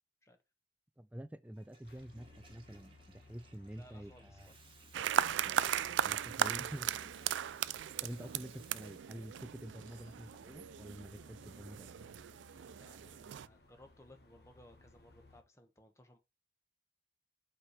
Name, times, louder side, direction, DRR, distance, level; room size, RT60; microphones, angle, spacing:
voice 1, 1.0-4.5 6.1-7.0 7.7-11.9, right 1 dB, 10° right, 0.3 m, -48 dB
Water tap faucet / Toilet flush, 1.4-9.5, right 4 dB, 30° right, 1.3 m, -62 dB
sound 1, 1.8-15.4, left 2 dB, 60° left, 1.3 m, -61 dB
voice 2, 3.8-4.8 5.2-6.1 12.7-16.2, left 1 dB, 15° left, 1.1 m, -61 dB
sound 2, 4.9-13.5, right 10 dB, 85° right, 0.3 m, -37 dB
5.8 x 4.8 x 6.6 m
head